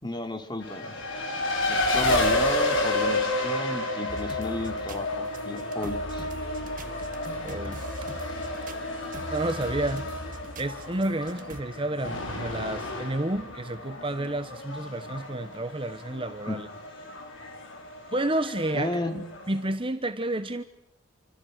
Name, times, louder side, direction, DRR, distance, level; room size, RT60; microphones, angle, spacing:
voice 1, 0.0-0.9 1.7-6.3 16.5-16.6 18.7-19.1, left 1 dB, 20° left, 6 dB, 3.0 m, -33 dB
Race car auto racing, 0.6-19.7, left 2 dB, 65° left, 5.4 m, -31 dB
sound 1, 4.1-11.6, right 1 dB, 40° right, 1.5 m, -41 dB
voice 2, 7.4-7.8 9.3-10.0 10.6-16.7 18.1-20.6, right 1 dB, 25° right, 10 dB, 1.1 m, -30 dB
29.0 x 26.0 x 6.6 m, 0.77 s
head